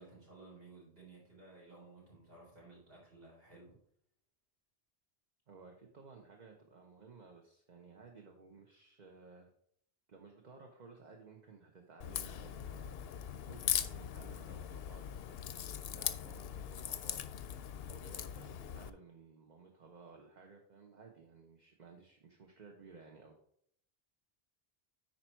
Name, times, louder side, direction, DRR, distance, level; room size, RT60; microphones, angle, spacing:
voice 1, 0.0-3.8, right 3 dB, 60° right, -5 dB, 4.1 m, -56 dB
voice 2, 5.5-9.5 10.1-13.0 13.5-17.2 17.9-23.4, right 4 dB, 45° right, 2 dB, 1.0 m, -57 dB
Crack, 12.0-18.9, left 9 dB, 70° left, 0.8 m, -40 dB
9.6 x 4.5 x 4.5 m, 0.67 s
omnidirectional pair, 1.1 m